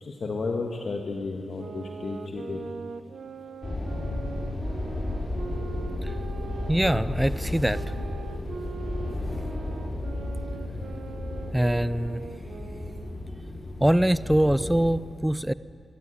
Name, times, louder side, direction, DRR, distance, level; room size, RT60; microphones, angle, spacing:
voice 1, 0.0-2.7, left 3 dB, 60° left, 2 dB, 1.7 m, -32 dB
sound 1, 1.5-7.1 7.7-13.3, right 5 dB, 75° right, 1.2 m, -41 dB
sound 2, 3.6-14.9, left 2 dB, 30° left, 4.6 m, -33 dB
voice 2, 6.7-7.8 11.5-12.2 13.8-15.5, right 1 dB, 5° right, 17 dB, 0.5 m, -23 dB
23.5 x 14.5 x 9.9 m, 2.3 s
wide cardioid pair, 95°, 0 cm